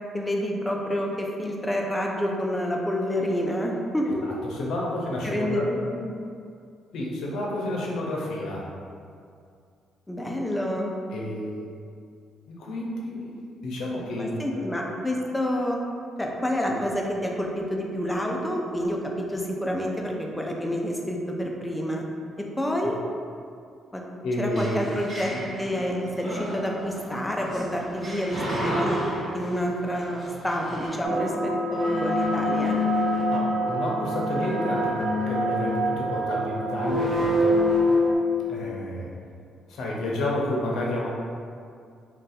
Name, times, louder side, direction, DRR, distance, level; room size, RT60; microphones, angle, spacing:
voice 1, 0.1-4.2 5.2-6.1 10.1-10.9 14.2-15.8 16.2-22.0 22.4-23.0 23.9-24.0 24.4-25.3 25.6-29.0 29.3-32.8, equal, 10° left, 0 dB, 0.4 m, -28 dB
voice 2, 4.0-5.7 6.9-8.7 11.1-11.7 12.5-13.4 13.6-14.6 16.7-16.8 22.8-22.9 24.2-24.9 33.3-37.6 38.5-39.1 39.7-41.1, left 1 dB, 80° left, -3 dB, 0.6 m, -30 dB
sound 1, 24.5-30.9, equal, 25° right, 1.4 m, -34 dB
sound 2, 31.0-38.2, left 1 dB, 50° right, 0.6 m, -25 dB
2.6 x 2.3 x 4.0 m, 2.3 s
cardioid pair, 90°, 0 cm